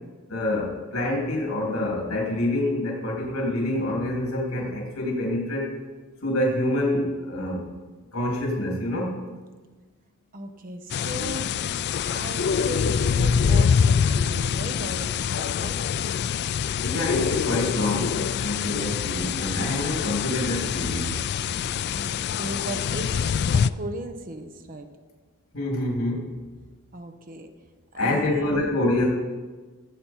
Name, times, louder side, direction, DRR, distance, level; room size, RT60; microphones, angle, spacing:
voice 1, 0.3-5.7 6.2-7.7 8.1-9.1 16.8-21.1 25.5-26.3 27.9-29.1, left 1 dB, 75° left, -2 dB, 3.3 m, -26 dB
voice 2, 10.3-11.5 12.1-15.8 18.8-19.0 21.7-24.9 26.9-27.5 27.9-28.8, right 1 dB, 40° right, 7 dB, 0.9 m, -37 dB
sound 1, 10.9-23.7, left 7 dB, 50° left, 0.3 m, -25 dB
16.5 x 8.5 x 4.5 m, 1.4 s
head